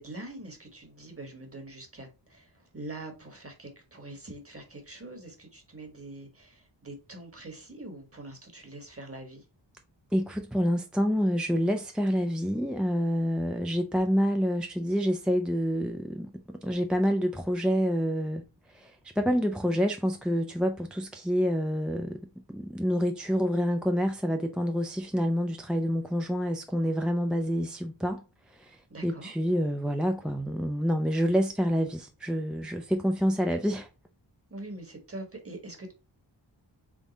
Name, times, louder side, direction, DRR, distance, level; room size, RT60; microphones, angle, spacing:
voice 1, 0.0-9.4 28.9-29.4 34.5-35.9, right 2 dB, 30° right, 1.4 m, -44 dB
voice 2, 10.1-18.4 18.7-22.2 22.5-28.2 28.5-28.8 29.0-33.9, equal, ahead, 0.4 m, -27 dB
3.7 x 3.6 x 3.9 m
wide cardioid pair, 95°, 44 cm